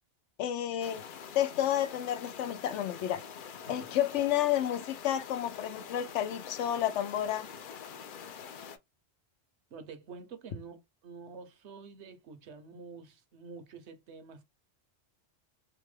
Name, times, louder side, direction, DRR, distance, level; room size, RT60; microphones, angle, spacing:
voice 1, 0.4-1.0 1.3-3.2 3.7-7.5, left 11 dB, 85° left, 0.9 m, -30 dB
sound 1, 0.8-8.8, left 7 dB, 60° left, 0.6 m, -45 dB
voice 2, 9.7-14.4, right 5 dB, 75° right, 1.0 m, -48 dB
2.9 x 2.2 x 3.1 m
omnidirectional pair, 1.2 m